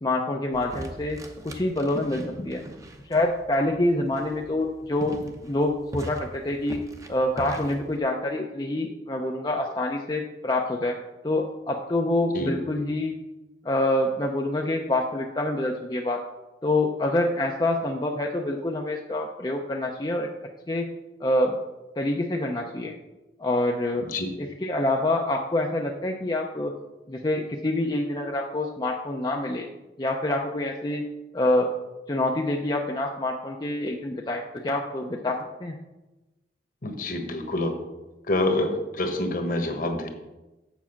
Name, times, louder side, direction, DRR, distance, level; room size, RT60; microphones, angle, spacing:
voice 1, 0.0-1.2 1.4-2.6 3.0-6.8 7.1-11.0 11.2-13.1 13.6-16.2 16.6-20.3 20.7-20.9 21.2-21.5 22.0-22.9 23.4-24.1 24.4-26.7 27.1-29.7 30.0-31.0 31.3-31.7 32.1-35.7, left 1 dB, 25° left, 1 dB, 0.6 m, -26 dB
sound 1, 0.5-8.0, right 1 dB, 20° right, 0.8 m, -41 dB
voice 2, 36.8-37.7 38.3-40.1, left 1 dB, 50° left, 5 dB, 1.3 m, -26 dB
7.3 x 7.2 x 5.8 m, 1.0 s
head